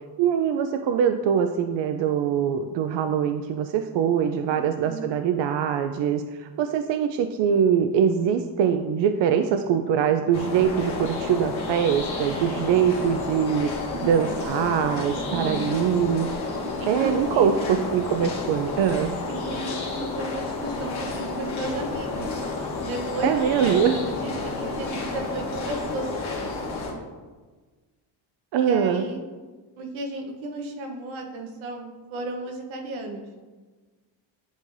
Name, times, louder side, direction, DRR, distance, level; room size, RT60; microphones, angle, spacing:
voice 1, 0.2-13.7 14.0-16.3 16.9-19.1 23.2-24.0 28.5-29.1, right 8 dB, 70° right, 7 dB, 0.5 m, -23 dB
voice 2, 4.5-5.1 13.9-14.7 15.3-15.7 16.8-17.9 19.3-22.3 22.8-26.8 28.6-29.2 29.8-33.3, right 2 dB, 90° right, 3 dB, 1.1 m, -34 dB
sound 1, 10.3-26.9, left 3 dB, 85° left, 1.7 m, -31 dB
10.0 x 3.8 x 2.6 m, 1.3 s
cardioid pair, 85°, 46 cm